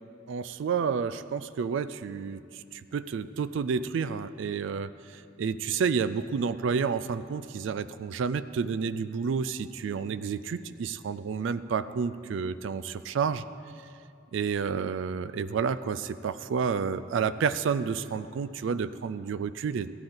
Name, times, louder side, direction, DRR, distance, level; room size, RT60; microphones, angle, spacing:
voice 1, 0.3-13.4 14.3-19.9, right 6 dB, 75° right, 14 dB, 0.3 m, -30 dB
15.0 x 10.5 x 3.9 m, 2.4 s
head